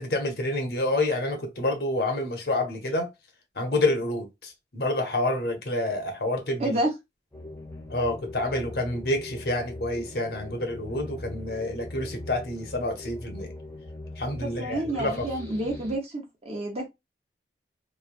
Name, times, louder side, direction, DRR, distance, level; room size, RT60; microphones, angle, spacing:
voice 1, 0.0-3.1 3.6-6.8 7.9-13.5 14.2-15.2, left 2 dB, 60° left, 0.8 m, -28 dB
voice 2, 6.6-6.9 14.4-16.9, right 1 dB, 35° right, 0.8 m, -29 dB
sound 1, 7.3-16.0, left 1 dB, 15° left, 0.7 m, -41 dB
3.1 x 2.2 x 2.5 m
head